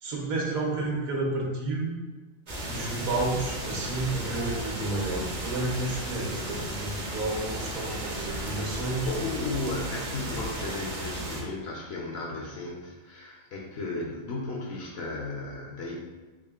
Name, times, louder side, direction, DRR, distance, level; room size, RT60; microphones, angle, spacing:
voice 1, 0.0-2.0 2.7-9.1, right 2 dB, 80° right, -1 dB, 1.2 m, -31 dB
sound 1, 2.5-11.4, right 1 dB, 55° right, 0.4 m, -34 dB
voice 2, 9.0-16.0, left 2 dB, 60° left, -2 dB, 0.7 m, -35 dB
3.6 x 3.4 x 2.3 m, 1.3 s
omnidirectional pair, 1.5 m